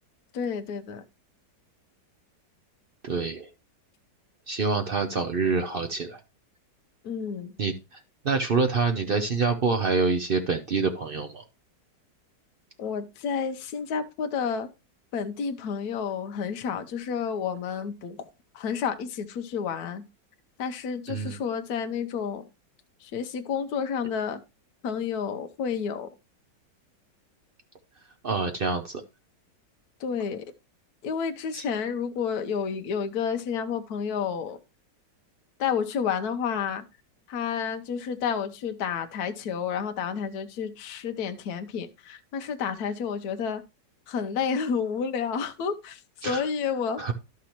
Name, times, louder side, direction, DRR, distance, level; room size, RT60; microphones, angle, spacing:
voice 1, 0.3-1.0 7.0-7.5 12.8-14.7 15.1-20.0 20.6-22.5 23.0-24.4 24.8-26.1 30.0-30.5 31.0-34.6 35.6-36.8 37.3-43.6 44.1-47.1, left 6 dB, 60° left, 1.3 m, -30 dB
voice 2, 3.0-3.5 4.5-6.2 7.6-8.0 8.2-11.4 21.1-21.4 28.2-29.0 31.5-31.6 46.2-46.4 47.0-47.1, right 4 dB, 60° right, 0.5 m, -26 dB
11.5 x 6.1 x 2.9 m
omnidirectional pair, 2.0 m